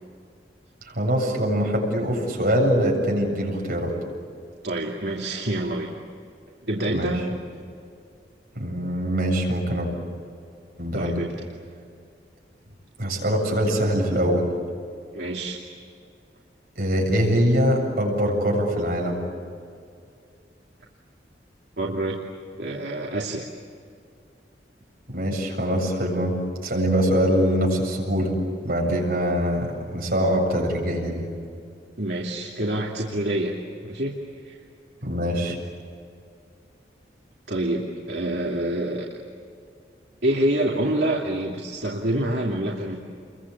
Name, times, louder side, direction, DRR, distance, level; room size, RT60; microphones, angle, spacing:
voice 1, 0.8-3.9 6.9-7.1 8.5-9.9 10.8-11.2 13.0-14.5 16.8-19.2 25.1-26.4 26.6-28.4 28.6-31.3 35.0-35.6, equal, 55° right, -1 dB, 7.7 m, -23 dB
voice 2, 4.6-5.9 6.6-7.3 10.9-11.3 15.1-15.6 21.8-22.2 22.6-23.5 32.0-33.5 33.8-34.1 34.4-34.6 35.4-35.5 37.5-39.0 40.2-43.0, right 1 dB, 70° right, -2 dB, 2.7 m, -26 dB
29.5 x 23.5 x 8.6 m, 2.4 s
head